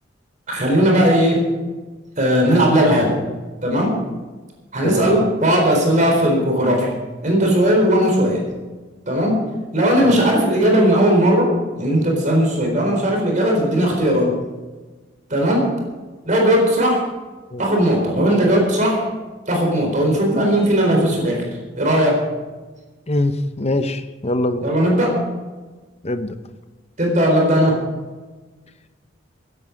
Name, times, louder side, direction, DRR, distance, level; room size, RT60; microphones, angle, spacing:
voice 1, 0.5-1.5 2.2-3.2 3.6-3.9 4.7-6.9 7.2-8.5 9.1-9.4 9.7-14.4 15.3-15.7 16.2-17.0 17.6-19.0 19.5-21.4 21.8-22.3 24.6-25.2 27.0-27.8, equal, 40° right, 1 dB, 4.2 m, -17 dB
voice 2, 4.8-5.2 10.0-10.2 17.5-17.6 23.1-24.7 26.0-26.4, left 1 dB, 35° left, 10 dB, 0.9 m, -23 dB
16.0 x 11.0 x 5.2 m, 1.3 s
head